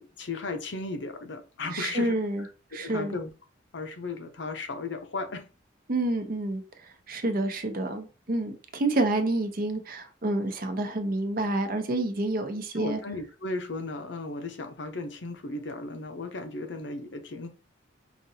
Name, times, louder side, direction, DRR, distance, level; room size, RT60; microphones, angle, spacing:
voice 1, 0.0-3.3 3.7-5.5 12.8-17.5, left 3 dB, 70° left, 0.7 m, -35 dB
voice 2, 1.7-2.4 2.7-3.2 5.9-13.0, right 2 dB, 50° right, 0.7 m, -29 dB
5.1 x 2.5 x 2.7 m
head